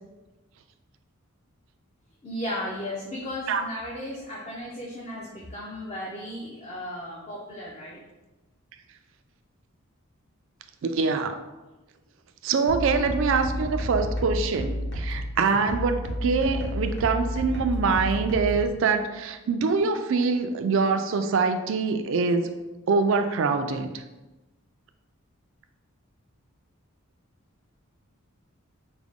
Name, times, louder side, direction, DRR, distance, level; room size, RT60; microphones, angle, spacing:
voice 1, 2.2-8.0, left 1 dB, 30° left, -4 dB, 0.5 m, -35 dB
voice 2, 10.8-11.4 12.4-22.5 22.9-23.9, right 4 dB, 60° right, 8 dB, 0.3 m, -24 dB
sound 1, 12.7-18.7, equal, 55° left, 1.0 m, -31 dB
4.8 x 2.1 x 3.5 m, 1.1 s
head